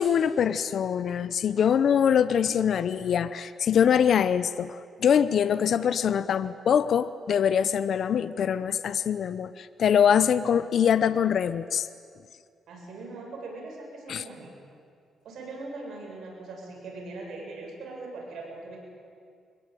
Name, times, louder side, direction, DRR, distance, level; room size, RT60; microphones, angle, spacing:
voice 1, 0.0-11.9 14.1-14.2, left 8 dB, 65° left, 13 dB, 0.7 m, -23 dB
voice 2, 12.7-14.5 15.2-18.8, right 3 dB, 75° right, -1 dB, 7.8 m, -40 dB
24.5 x 22.0 x 9.1 m, 2.3 s
cardioid pair, 105°, 0 cm